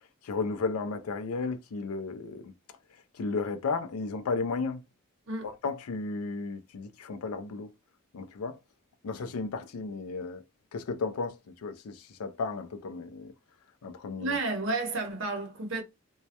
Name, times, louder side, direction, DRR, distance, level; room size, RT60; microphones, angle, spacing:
voice 1, 0.2-2.5 3.1-4.8 5.4-7.7 8.1-8.6 9.0-10.4 10.7-13.3 13.8-14.4, left 4 dB, 80° left, 0.4 m, -34 dB
voice 2, 14.2-15.8, right 3 dB, 60° right, 0.7 m, -31 dB
2.2 x 2.0 x 2.7 m
head